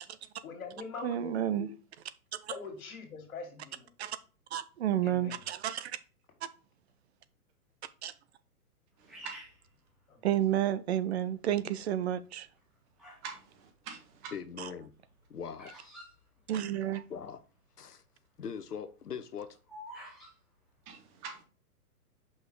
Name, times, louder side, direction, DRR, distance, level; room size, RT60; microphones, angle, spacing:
voice 1, 0.4-1.7 2.5-3.9 5.0-5.4 10.1-10.3, left 5 dB, 65° left, 2.3 m, -43 dB
voice 2, 1.0-1.7 2.4-2.5 4.0-4.2 4.5-6.0 6.4-6.5 8.0-8.1 10.2-12.5 14.6-14.7 16.5-17.0, right 11 dB, 45° right, 0.6 m, -31 dB
voice 3, 9.0-9.4 13.2-14.3 20.9-21.4, right 6 dB, 30° right, 1.5 m, -45 dB
Bird vocalization bird call bird song, 9.1-10.6 11.2-11.7 12.4-13.3 13.6-17.1 17.4-17.5 17.6-18.0 18.4-20.3, equal, ahead, 0.4 m, -50 dB
voice 4, 14.3-14.9 15.3-15.7 17.1-17.4 17.8-18.0 18.4-19.6, left 7 dB, 85° left, 0.9 m, -41 dB
5.6 x 4.8 x 4.7 m
figure-of-eight pair, 120°, 45 cm